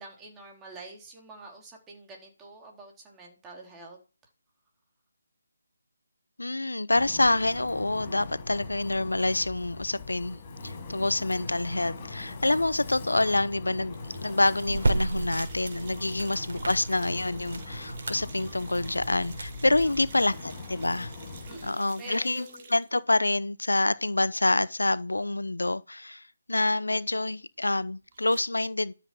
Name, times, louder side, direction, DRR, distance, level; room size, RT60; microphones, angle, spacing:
voice 1, 0.0-4.0 16.2-16.3 19.8-20.2 21.5-22.7, right 2 dB, 10° right, 3.8 m, -47 dB
voice 2, 6.4-21.1 21.6-28.9, left 2 dB, 85° left, 0.7 m, -27 dB
Wind, 6.9-21.7, left 3 dB, 25° left, 6.2 m, -41 dB
sound 1, 13.9-23.0 28.1-28.4, right 5 dB, 35° right, 3.1 m, -50 dB
sound 2, 14.6-20.1, right 2 dB, 55° right, 4.3 m, -34 dB
12.5 x 8.1 x 6.1 m
figure-of-eight pair, 155°, 0 cm